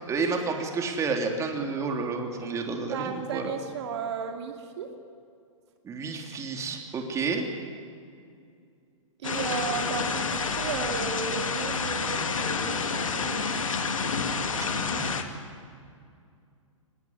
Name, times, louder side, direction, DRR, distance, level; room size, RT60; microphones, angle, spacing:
voice 1, 0.1-3.6 5.8-7.5 14.5-15.1, right 4 dB, 15° right, 3 dB, 3.3 m, -30 dB
voice 2, 2.8-4.9 9.2-13.4, right 6 dB, 55° right, 4 dB, 2.6 m, -34 dB
sound 1, 9.2-15.2, left 4 dB, 75° left, 2.6 m, -29 dB
25.0 x 20.5 x 9.9 m, 2.4 s
hypercardioid pair, 120°, 17 cm